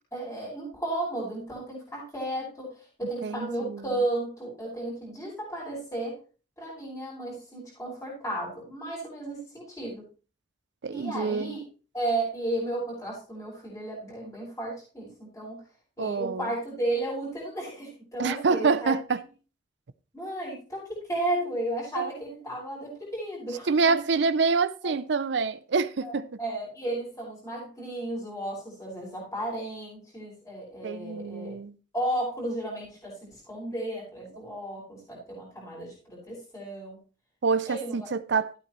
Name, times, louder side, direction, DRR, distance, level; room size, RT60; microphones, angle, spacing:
voice 1, 0.1-6.2 6.6-10.0 10.9-11.6 11.9-15.6 16.0-19.0 20.1-24.0 24.8-25.0 26.0-31.6 31.9-37.0 37.7-38.1, right 1 dB, 15° left, 5.5 m, -34 dB
voice 2, 3.2-3.8 10.8-11.6 16.0-16.5 18.2-19.2 22.0-22.1 23.7-26.3 30.8-31.7 37.4-38.5, right 4 dB, 65° right, 0.5 m, -26 dB
13.5 x 8.8 x 3.1 m
head